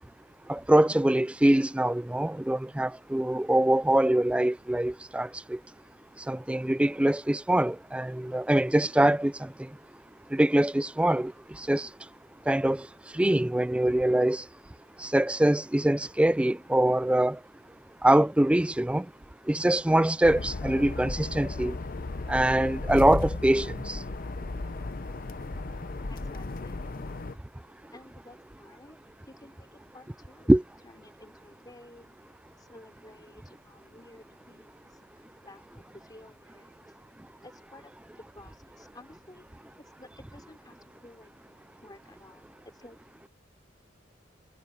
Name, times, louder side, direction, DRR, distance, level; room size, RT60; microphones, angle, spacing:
voice 1, 0.5-5.6 6.3-9.5 10.3-11.3 11.6-11.9 12.5-12.9 13.1-14.4 15.0-17.4 18.0-19.1 19.5-21.8 22.3-24.0 30.5-30.6, right 1 dB, 5° right, 0.3 m, -24 dB
sound 1, 20.2-27.3, left 2 dB, 50° left, 0.7 m, -35 dB
voice 2, 26.1-26.9 27.6-29.0 29.3-30.5 30.8-32.2 32.6-36.9 37.4-37.9 38.2-39.4 39.8-41.3 41.8-43.0, left 1 dB, 20° left, 4.1 m, -53 dB
head